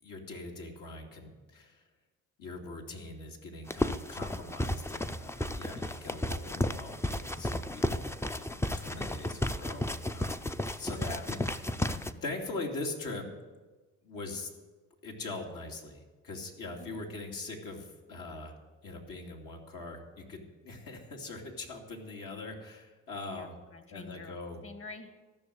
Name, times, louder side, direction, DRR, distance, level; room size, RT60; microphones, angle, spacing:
voice 1, 0.0-1.8 2.4-9.9 10.1-10.4 10.7-11.8 12.2-13.3 14.0-14.5 15.0-18.5 18.8-23.5 23.9-24.6, left 2 dB, 65° left, 0 dB, 2.7 m, -42 dB
sound 1, 3.7-12.1, left 1 dB, 5° left, 0.6 m, -33 dB
voice 2, 10.9-11.3 11.6-12.2 16.8-17.0 23.2-25.2, left 3 dB, 35° left, 8 dB, 1.9 m, -48 dB
14.0 x 6.5 x 9.6 m, 1.3 s
supercardioid pair, 65°, 36 cm